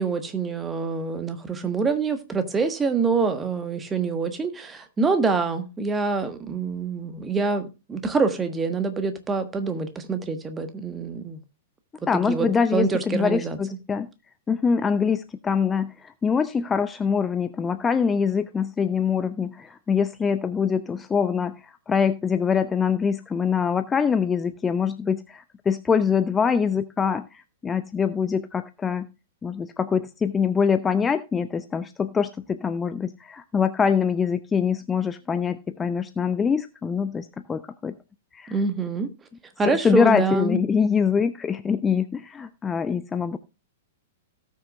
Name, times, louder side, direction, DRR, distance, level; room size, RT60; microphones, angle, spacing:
voice 1, 0.0-11.4 12.3-13.6 38.5-39.1 39.6-40.6, right 4 dB, 15° right, 8 dB, 1.4 m, -26 dB
voice 2, 12.1-14.1 14.5-29.1 29.4-37.9 38.3-38.6 39.6-43.4, left 6 dB, 15° left, 12 dB, 0.5 m, -24 dB
18.0 x 6.3 x 2.3 m, 0.28 s
figure-of-eight pair, 105°, 0 cm